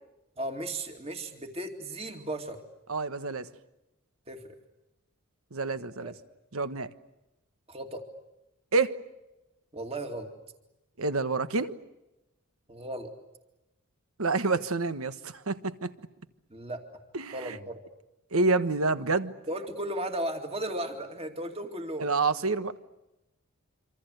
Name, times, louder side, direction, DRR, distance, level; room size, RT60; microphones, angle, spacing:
voice 1, 0.4-2.6 4.3-4.4 6.0-6.1 7.7-8.1 9.7-10.3 12.7-13.1 16.5-17.0 17.3-17.8 19.5-22.1, right 1 dB, 25° right, 5 dB, 2.4 m, -35 dB
voice 2, 2.9-3.5 5.5-6.1 6.5-6.9 8.7-9.0 11.0-11.7 14.2-15.9 17.1-17.6 18.3-19.3 22.0-22.7, right 3 dB, 80° right, 12 dB, 1.3 m, -28 dB
26.5 x 26.0 x 8.0 m, 0.95 s
head